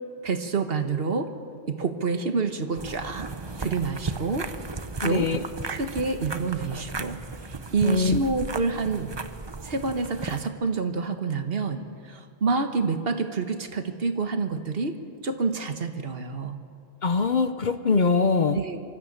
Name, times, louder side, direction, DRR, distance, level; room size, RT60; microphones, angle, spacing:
voice 1, 0.2-1.3 1.6-3.3 3.6-4.5 5.0-5.3 5.7-7.2 7.5-9.1 9.6-16.6 18.5-18.8, right 4 dB, 60° right, 7 dB, 1.5 m, -28 dB
sound 1, 2.8-10.5, right 3 dB, 30° right, 0.7 m, -35 dB
voice 2, 5.0-5.4 7.8-8.2 17.0-18.6, left 4 dB, 50° left, 10 dB, 0.8 m, -23 dB
24.5 x 13.5 x 8.6 m, 2.4 s
omnidirectional pair, 1.1 m